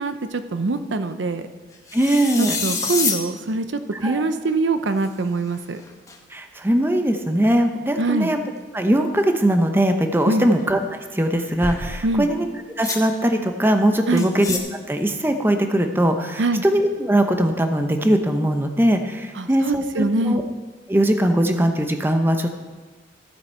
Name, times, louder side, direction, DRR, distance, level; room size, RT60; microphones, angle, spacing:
voice 1, 0.0-1.5 2.4-5.8 8.0-8.3 10.2-10.5 12.0-12.3 14.1-14.3 16.4-16.6 19.4-20.4, right 3 dB, 80° right, 9 dB, 0.6 m, -23 dB
sound 1, 1.9-3.3 4.5-4.6 5.0-5.1 5.8-6.2 11.4-12.0 12.8-13.0 14.2-14.6, left 4 dB, 15° left, 1.0 m, -27 dB
voice 2, 1.9-2.6 4.0-4.2 6.3-8.4 8.7-10.8 11.1-12.5 12.8-14.6 14.9-20.4 20.9-22.5, right 1 dB, 10° right, 6 dB, 0.7 m, -20 dB
14.0 x 7.9 x 4.4 m, 1.3 s
head